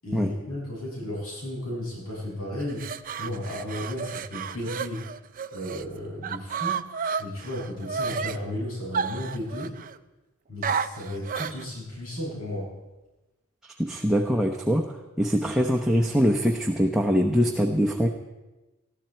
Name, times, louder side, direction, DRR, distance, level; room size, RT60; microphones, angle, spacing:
voice 1, 0.0-5.1 5.5-6.8 7.2-9.8 10.5-12.7, left 1 dB, 80° left, -4 dB, 7.3 m, -34 dB
sound 1, 2.6-5.9 6.2-8.4 8.9-10.0 10.6-11.6, right 6 dB, 40° right, 0.5 m, -31 dB
voice 2, 13.8-18.1, equal, ahead, 1 dB, 0.8 m, -23 dB
20.0 x 13.0 x 4.5 m, 1.1 s
head